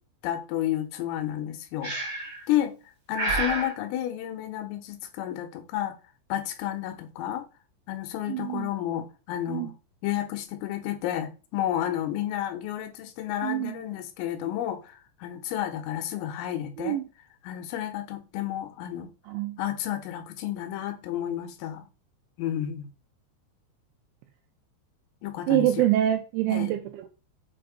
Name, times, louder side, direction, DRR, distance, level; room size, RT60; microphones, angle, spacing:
voice 1, 0.2-1.9 2.5-2.8 3.1-6.0 6.3-7.4 7.9-9.7 10.0-17.0 17.4-19.1 19.6-21.9 22.4-22.9 25.2-25.9 26.5-26.7, left 12 dB, 85° left, 3.6 m, -31 dB
Breathing, 1.8-2.4 3.1-3.7, right 2 dB, 50° right, 1.1 m, -29 dB
voice 2, 8.3-8.7 9.5-9.7 13.4-13.8 16.8-17.1 19.3-19.6 25.5-27.1, right 13 dB, 85° right, 2.6 m, -25 dB
7.6 x 2.7 x 5.0 m
omnidirectional pair, 5.7 m